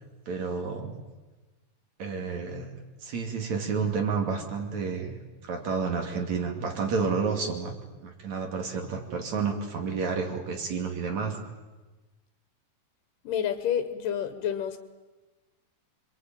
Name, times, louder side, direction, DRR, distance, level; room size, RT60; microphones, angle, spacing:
voice 1, 0.3-1.0 2.0-2.7 3.0-7.8 8.0-11.4, right 5 dB, 60° right, 3 dB, 3.8 m, -30 dB
voice 2, 13.2-14.8, left 9 dB, 85° left, 9 dB, 2.9 m, -29 dB
27.0 x 23.0 x 9.1 m, 1.2 s
omnidirectional pair, 3.7 m